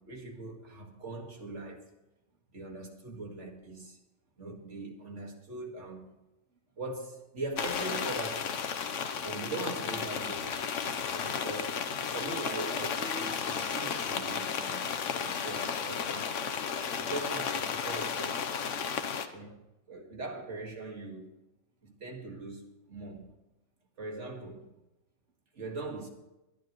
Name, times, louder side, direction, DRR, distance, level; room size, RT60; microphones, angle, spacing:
voice 1, 0.0-1.9 2.5-4.0 4.4-6.1 6.8-8.6 9.2-10.6 11.1-16.4 17.0-18.5 19.3-19.6 19.9-21.3 21.8-23.4 24.0-24.7 25.5-26.1, right 2 dB, 70° right, 2.3 m, -41 dB
sound 1, 7.6-19.3, left 6 dB, 80° left, 1.3 m, -33 dB
22.0 x 11.0 x 3.1 m
omnidirectional pair, 1.3 m